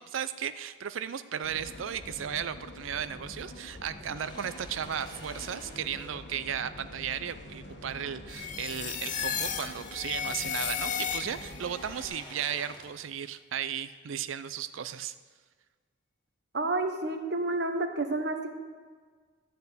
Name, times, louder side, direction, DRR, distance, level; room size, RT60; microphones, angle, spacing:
voice 1, 0.0-15.1, right 8 dB, 85° right, 13 dB, 0.5 m, -35 dB
sound 1, 1.4-12.1, left 1 dB, 65° left, 1.2 m, -46 dB
sound 2, 4.1-8.4 8.7-13.1, left 1 dB, 20° left, 1.4 m, -50 dB
sound 3, 8.3-11.7, left 8 dB, 40° left, 0.5 m, -34 dB
voice 2, 16.5-18.6, right 2 dB, 55° right, 6 dB, 1.0 m, -30 dB
13.0 x 4.5 x 8.2 m, 1.6 s
head